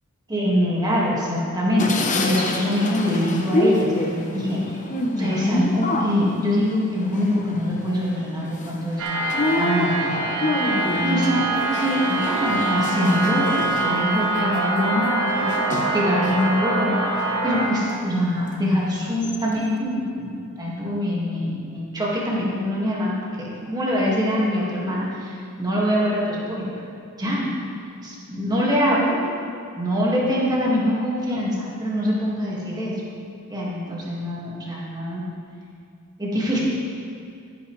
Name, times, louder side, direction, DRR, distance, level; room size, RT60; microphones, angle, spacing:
voice 1, 0.3-4.8 5.2-15.5 15.9-26.7 27.2-27.5 28.0-29.2 29.8-32.9 33.5-35.2 36.2-36.6, equal, 20° right, -6 dB, 1.7 m, -24 dB
sound 1, 1.8-16.6 17.0-18.0 18.5-18.6 18.9-19.7, left 2 dB, 35° left, 0.8 m, -28 dB
sound 2, 9.0-17.7, right 2 dB, 65° right, 1.1 m, -24 dB
12.5 x 10.0 x 3.1 m, 2.4 s
head